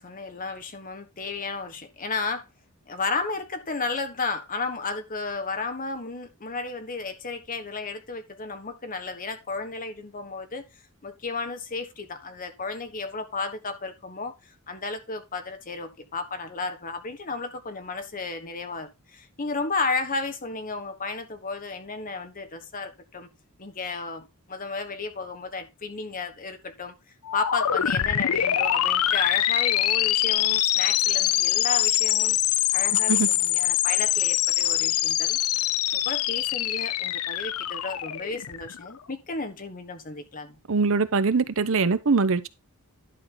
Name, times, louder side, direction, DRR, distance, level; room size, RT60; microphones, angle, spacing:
voice 1, 0.0-2.5 2.9-10.7 11.0-23.3 23.6-26.9 27.3-32.4 32.7-35.4 35.9-40.6, left 4 dB, 40° left, 1.3 m, -33 dB
sound 1, 27.3-38.9, left 12 dB, 70° left, 0.5 m, -24 dB
voice 2, 40.7-42.5, right 4 dB, 60° right, 0.8 m, -22 dB
11.0 x 6.2 x 3.8 m
head